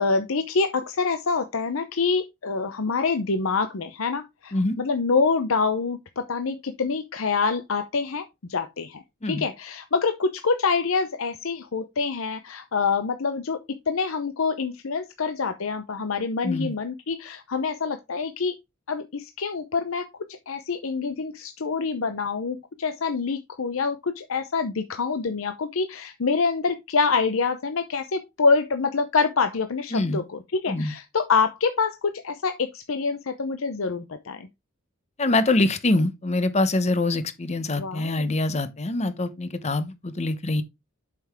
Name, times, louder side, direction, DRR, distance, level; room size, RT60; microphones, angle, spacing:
voice 1, 0.0-13.6 13.9-18.6 18.9-20.1 20.5-34.5 37.8-38.3, left 4 dB, 70° left, 0.7 m, -26 dB
voice 2, 29.9-30.2 30.7-30.9 35.2-40.6, left 2 dB, 30° left, 0.9 m, -24 dB
7.7 x 5.8 x 3.5 m
head